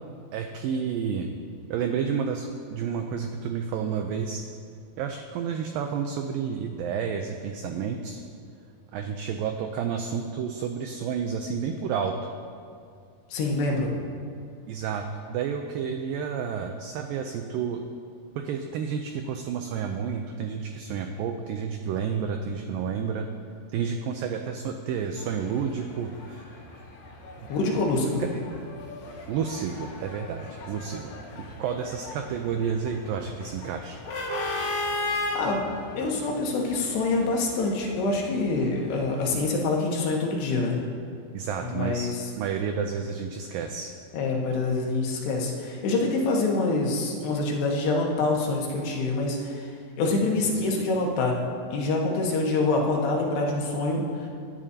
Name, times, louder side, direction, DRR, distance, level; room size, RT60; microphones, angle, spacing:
voice 1, 0.3-1.4 1.7-4.4 5.0-8.2 8.9-12.2 14.7-17.8 18.4-23.3 23.7-26.6 27.4-27.5 29.3-34.0 41.3-42.1 42.4-43.9, right 7 dB, 80° right, 5 dB, 2.0 m, -30 dB
voice 2, 13.3-14.0 27.5-28.2 35.4-35.6 36.0-40.8 41.6-42.1 44.1-49.7 50.0-51.4 51.7-54.3, left 3 dB, 90° left, -1 dB, 3.6 m, -26 dB
sound 1, 25.2-39.5, left 2 dB, 65° left, 3.2 m, -37 dB
24.0 x 10.0 x 2.8 m, 2.3 s
omnidirectional pair, 4.6 m